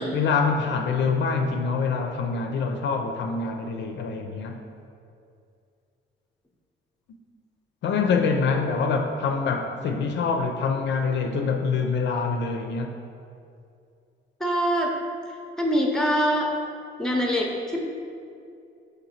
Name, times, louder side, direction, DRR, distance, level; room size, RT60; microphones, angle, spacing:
voice 1, 0.0-4.6 7.8-12.9, left 5 dB, 65° left, 4 dB, 0.4 m, -25 dB
voice 2, 14.4-14.9 15.3-16.5 17.0-17.8, equal, 5° left, 0 dB, 0.6 m, -24 dB
3.7 x 3.3 x 4.2 m, 2.4 s
cardioid pair, 90°, 20 cm